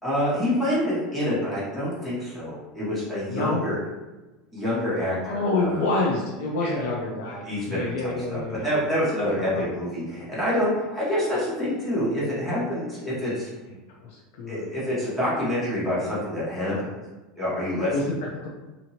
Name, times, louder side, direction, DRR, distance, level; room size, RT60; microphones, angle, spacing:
voice 1, 0.0-3.8 4.5-5.8 6.6-6.9 7.4-13.5 14.5-16.9 17.4-17.9, left 1 dB, 10° left, -9 dB, 1.1 m, -27 dB
voice 2, 3.3-3.6 5.2-8.7 9.5-9.6 14.0-14.7 17.9-18.2 18.4-18.5, left 2 dB, 75° left, -2 dB, 0.5 m, -27 dB
2.9 x 2.6 x 2.8 m, 1.1 s
supercardioid pair, 160°, 0 cm